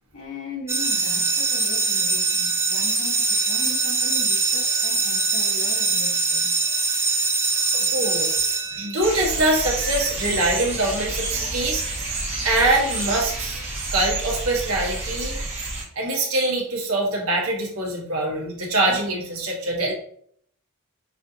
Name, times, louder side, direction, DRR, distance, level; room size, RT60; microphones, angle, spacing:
voice 1, 0.1-6.5, left 1 dB, 75° left, -3 dB, 1.7 m, -38 dB
sound 1, 0.7-9.3, right 3 dB, 10° right, 0.4 m, -23 dB
voice 2, 7.7-8.3 8.7-11.8 12.4-13.6 13.9-15.4 15.9-19.9, right 2 dB, 70° right, -2 dB, 1.4 m, -24 dB
sound 2, 9.0-15.8, right 2 dB, 30° right, 1.5 m, -29 dB
6.3 x 2.7 x 2.8 m, 0.65 s
head